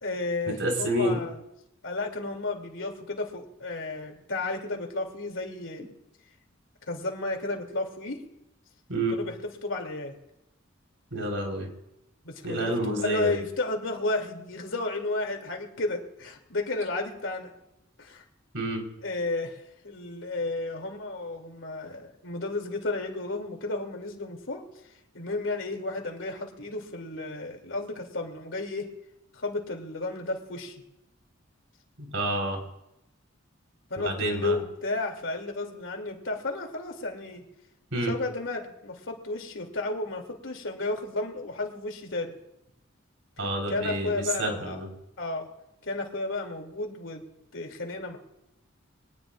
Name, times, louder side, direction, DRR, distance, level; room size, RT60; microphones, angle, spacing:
voice 1, 0.0-1.4 1.8-5.9 6.9-8.2 9.1-9.3 9.6-10.1 12.2-17.5 18.0-18.2 19.0-19.6 19.8-24.6 25.1-28.9 29.3-30.8 33.9-37.4 38.0-42.3 43.7-44.8 45.2-45.5 45.8-47.2 47.5-48.2, left 2 dB, 75° left, 3 dB, 2.9 m, -32 dB
voice 2, 0.6-1.2 5.8-5.9 8.9-9.1 11.1-11.7 12.4-13.4 18.5-18.8 32.0-32.6 34.0-34.6 37.9-38.1 43.4-44.9, right 1 dB, 70° right, 1 dB, 4.4 m, -29 dB
23.5 x 19.0 x 2.5 m, 0.87 s
head